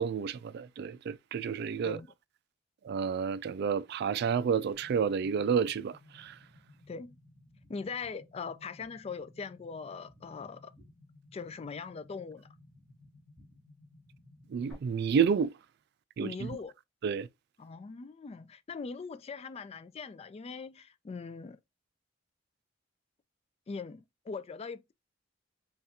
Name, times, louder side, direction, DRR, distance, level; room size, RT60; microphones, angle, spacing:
voice 1, 0.0-2.0 2.8-6.4 14.5-15.5 16.2-16.5 17.0-17.3, right 6 dB, 60° right, 0.3 m, -30 dB
sound 1, 4.7-14.7, left 1 dB, 5° left, 3.0 m, -58 dB
voice 2, 7.7-10.7 11.3-12.5 16.2-16.7 17.6-21.6 23.7-24.9, left 5 dB, 30° left, 0.3 m, -41 dB
5.5 x 2.4 x 2.8 m
head